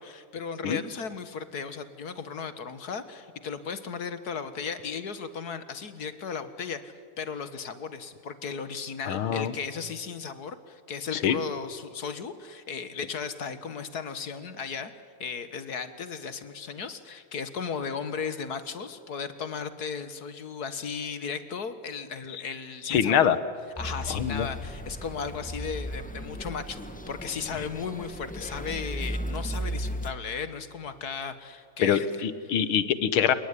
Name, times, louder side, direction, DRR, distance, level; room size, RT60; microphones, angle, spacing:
voice 1, 0.0-14.9 15.2-23.3 23.8-32.5, left 6 dB, 50° left, 11 dB, 1.9 m, -36 dB
voice 2, 9.1-9.5 11.1-11.4 22.3-22.4 22.9-23.4 24.1-24.5 31.8-33.3, left 8 dB, 70° left, 14 dB, 2.0 m, -24 dB
sound 1, 23.7-30.1, equal, 5° left, 1.1 m, -36 dB
29.0 x 19.5 x 9.9 m, 2.2 s
omnidirectional pair, 2.4 m